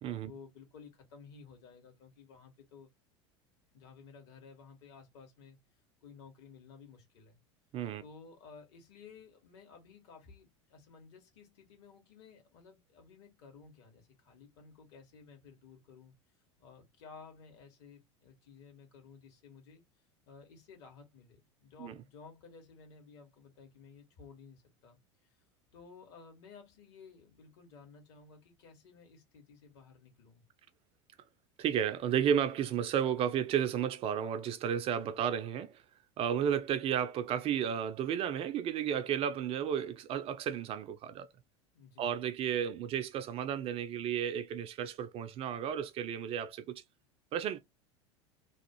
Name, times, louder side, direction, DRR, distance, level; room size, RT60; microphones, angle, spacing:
voice 1, 0.2-2.9 3.7-5.6 6.0-7.4 8.0-16.1 16.6-19.8 20.3-25.4 25.7-30.4 35.0-35.2 41.7-42.1, left 5 dB, 60° left, 1.6 m, -55 dB
voice 2, 31.6-35.8 36.2-41.3 42.0-46.8 47.3-47.6, right 9 dB, 40° right, 0.4 m, -33 dB
3.0 x 2.3 x 2.9 m
hypercardioid pair, 80°, 15 cm